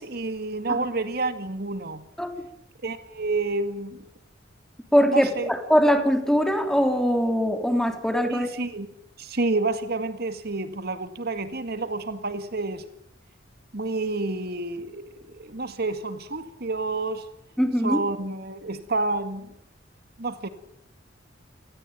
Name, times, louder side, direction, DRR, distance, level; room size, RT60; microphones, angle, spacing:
voice 1, 0.0-2.0 2.8-4.0 5.1-5.5 8.3-8.9 9.2-12.8 13.7-17.3 17.8-19.5 20.2-20.5, right 3 dB, 55° right, 2.0 m, -29 dB
voice 2, 4.9-8.5 17.6-18.0, equal, ahead, 3.5 m, -22 dB
29.0 x 21.0 x 9.2 m
head